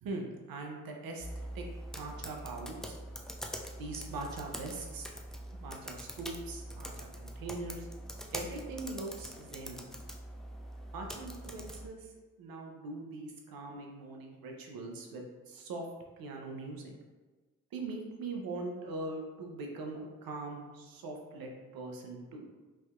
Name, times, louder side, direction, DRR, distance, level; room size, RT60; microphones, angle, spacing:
voice 1, 0.0-1.7 2.0-3.0 3.8-5.1 5.5-7.9 8.3-9.8 10.9-15.9 16.2-16.9 17.7-22.4, right 3 dB, 80° right, 1 dB, 0.6 m, -42 dB
sound 1, 1.2-11.9, equal, ahead, 0.4 m, -44 dB
3.2 x 2.6 x 2.4 m, 1.3 s
supercardioid pair, 45°, 35 cm